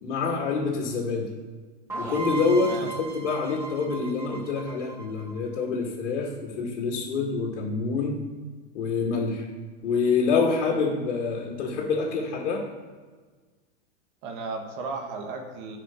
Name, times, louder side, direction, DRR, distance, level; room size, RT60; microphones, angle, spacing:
voice 1, 0.0-1.3 2.0-8.2 8.7-9.5 9.8-12.6, left 4 dB, 80° left, -3 dB, 2.0 m, -26 dB
sound 1, 1.9-5.6, right 3 dB, 5° right, 1.4 m, -36 dB
voice 2, 2.6-3.0 14.2-15.8, right 3 dB, 40° right, 4 dB, 1.4 m, -35 dB
10.5 x 5.1 x 4.4 m, 1.4 s
supercardioid pair, 165°, 35 cm